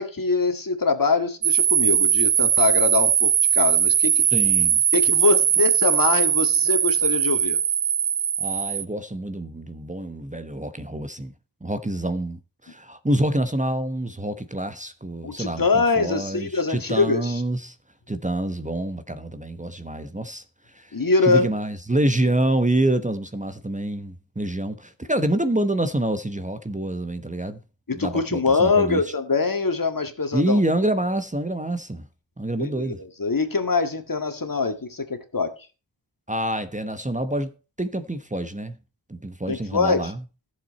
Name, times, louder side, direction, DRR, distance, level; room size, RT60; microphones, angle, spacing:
voice 1, 0.0-4.2 4.9-7.6 15.2-17.4 20.9-21.5 27.9-30.6 32.6-35.6 39.5-40.1, left 4 dB, 50° left, 2.0 m, -23 dB
sound 1, 1.4-8.8, right 9 dB, 80° right, 0.7 m, -20 dB
voice 2, 4.3-4.8 8.4-11.3 11.6-17.7 18.1-20.4 20.7-20.9 21.2-27.6 27.9-29.0 30.3-32.0 32.4-33.0 36.3-37.5 37.8-38.8 39.1-40.2, right 1 dB, 15° right, 1.1 m, -26 dB
14.5 x 7.5 x 4.2 m
wide cardioid pair, 70°, 43 cm